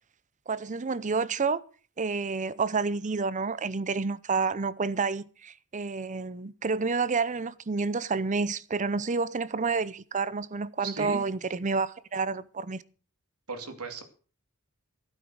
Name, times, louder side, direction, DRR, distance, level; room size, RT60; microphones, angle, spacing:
voice 1, 0.5-1.6 2.0-12.8, right 4 dB, 35° right, 0.7 m, -29 dB
voice 2, 10.8-11.2 13.5-14.0, right 4 dB, 85° right, 2.6 m, -36 dB
15.5 x 9.1 x 6.4 m
head